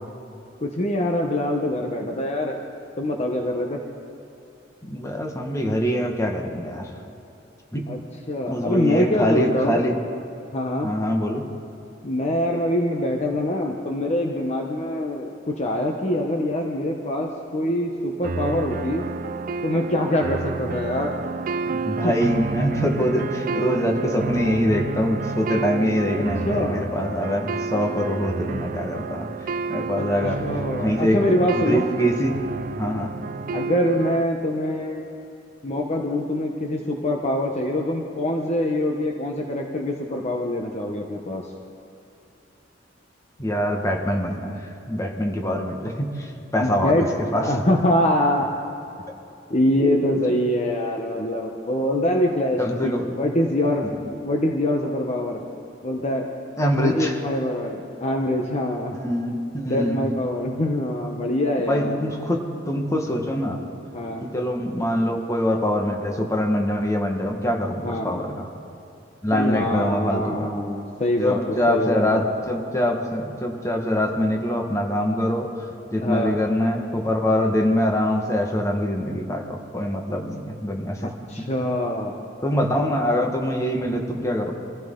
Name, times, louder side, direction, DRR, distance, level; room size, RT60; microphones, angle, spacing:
voice 1, 0.6-2.6 3.0-3.8 7.9-8.0 8.3-9.8 10.5-10.9 12.0-19.0 19.6-21.2 22.0-22.1 26.1-26.9 30.0-30.1 30.4-31.9 33.5-35.0 35.6-41.5 46.6-47.1 47.4-48.6 49.5-52.9 53.2-53.9 54.2-55.4 55.8-56.3 56.7-59.0 59.7-62.0 63.9-64.3 67.8-68.1 69.3-71.4 71.7-72.2 76.0-76.3 81.0-82.1, left 1 dB, 35° left, 1 dB, 1.0 m, -24 dB
voice 2, 4.8-6.9 7.7-7.9 8.5-10.0 10.8-11.5 21.7-30.4 30.8-32.4 32.8-33.1 43.4-47.0 47.3-47.5 52.6-53.1 53.8-54.1 56.6-57.2 59.0-60.0 61.7-63.6 64.2-68.5 69.2-70.5 71.2-81.1 82.4-84.5, equal, 15° left, 2 dB, 1.5 m, -24 dB
sound 1, 18.2-34.2, right 4 dB, 45° right, 0.4 m, -30 dB
24.5 x 15.0 x 3.8 m, 2.8 s
head